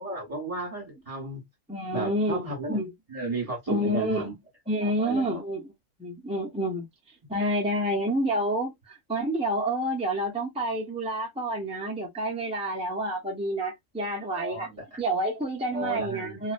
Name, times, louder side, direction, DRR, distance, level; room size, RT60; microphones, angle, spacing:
voice 1, 0.0-1.5 1.9-2.8 3.1-4.3 4.8-5.4 14.2-15.0 15.7-16.4, right 2 dB, 25° right, 1.3 m, -34 dB
voice 2, 1.7-2.9 3.7-4.3 4.7-5.7 6.0-6.9 7.3-14.7 15.0-16.5, right 1 dB, 10° right, 0.3 m, -29 dB
2.4 x 2.2 x 2.4 m
omnidirectional pair, 1.4 m